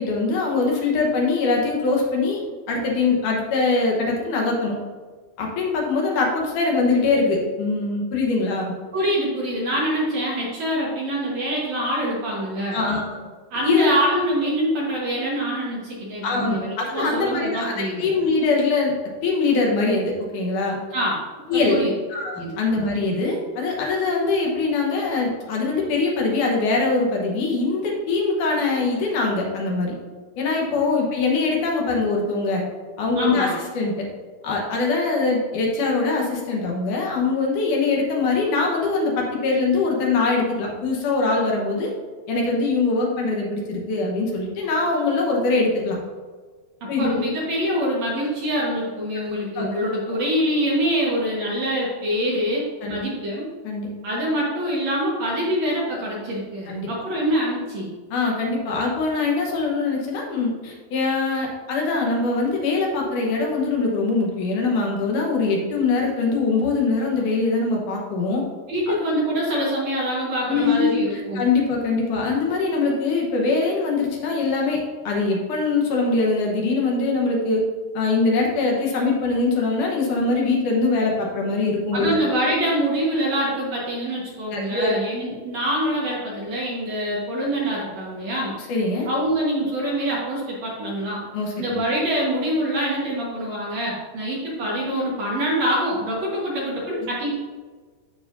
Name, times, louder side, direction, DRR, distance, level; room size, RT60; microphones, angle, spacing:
voice 1, 0.0-2.4 2.7-4.8 5.4-8.7 12.7-13.2 13.6-13.9 16.2-18.9 19.2-20.8 21.5-21.8 22.1-29.9 30.4-32.6 33.0-34.1 34.4-41.9 42.3-46.0 46.9-47.1 49.6-49.7 50.1-50.2 52.8-53.0 53.6-53.9 56.7-56.9 58.1-68.4 68.9-69.0 70.5-74.8 75.0-77.6 77.9-82.2 84.5-84.9 88.7-89.1 91.3-91.8, left 3 dB, 65° left, -1 dB, 2.2 m, -22 dB
voice 2, 8.9-12.8 13.5-18.1 20.9-21.2 21.7-21.9 22.4-22.6 30.7-30.8 33.1-33.5 47.0-53.4 54.0-57.9 68.7-71.5 81.9-88.5 89.1-91.2 91.6-97.3, equal, 55° right, -5 dB, 2.1 m, -25 dB
14.0 x 4.8 x 2.6 m, 1.4 s
omnidirectional pair, 4.6 m